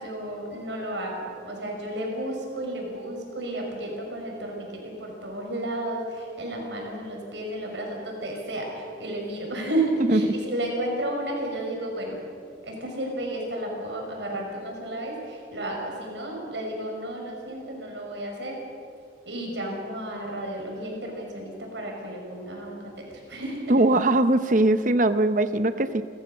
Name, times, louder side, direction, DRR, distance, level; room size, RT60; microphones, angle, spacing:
voice 1, 0.0-12.2 12.6-18.6 19.3-23.9, right 1 dB, 80° right, 0 dB, 5.9 m, -32 dB
voice 2, 23.7-26.0, right 2 dB, 45° right, 11 dB, 0.9 m, -21 dB
29.5 x 14.5 x 6.8 m, 2.4 s
head